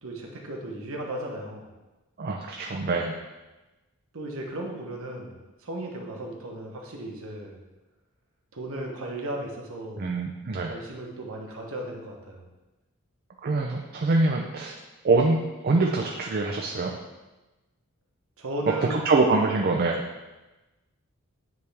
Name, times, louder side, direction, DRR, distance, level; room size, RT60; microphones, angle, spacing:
voice 1, 0.0-1.7 4.1-7.6 8.5-10.1 10.6-12.4 18.4-19.1, right 1 dB, 65° right, 0 dB, 1.1 m, -35 dB
voice 2, 2.2-3.2 10.0-10.7 13.4-14.7 15.0-16.9 18.9-20.1, right 3 dB, 45° right, 1 dB, 0.5 m, -24 dB
9.3 x 3.5 x 3.4 m, 1.1 s
head